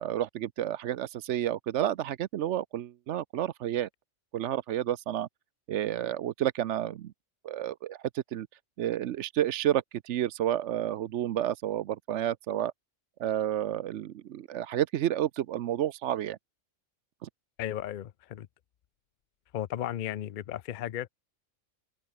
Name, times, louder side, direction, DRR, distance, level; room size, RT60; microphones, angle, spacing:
voice 1, 0.0-3.9 4.3-5.3 5.7-7.1 7.4-8.5 8.8-12.7 13.2-16.4 17.2-17.3, right 11 dB, 70° right, 0.9 m, -30 dB
voice 2, 17.6-18.5 19.5-21.1, left 11 dB, 55° left, 0.5 m, -35 dB
open air
omnidirectional pair, 1.3 m